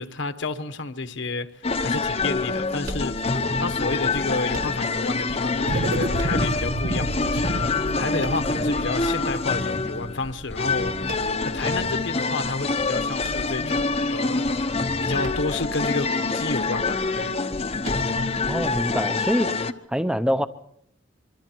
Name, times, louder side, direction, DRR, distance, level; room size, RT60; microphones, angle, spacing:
voice 1, 0.0-11.3 11.5-17.4, left 3 dB, 65° left, 1.3 m, -31 dB
sound 1, 1.6-19.7, left 3 dB, 30° left, 0.9 m, -26 dB
sound 2, 2.8-3.6 4.5-5.2 6.1-6.9 8.2-9.0 11.0-11.6 13.2-14.1 15.2-15.8 16.0-16.1 17.8-18.5, right 1 dB, 80° right, 3.1 m, -38 dB
sound 3, 5.6-10.3, right 1 dB, 65° right, 1.2 m, -30 dB
voice 2, 18.5-19.6 19.9-20.5, equal, 5° right, 0.7 m, -24 dB
25.0 x 24.0 x 4.6 m
head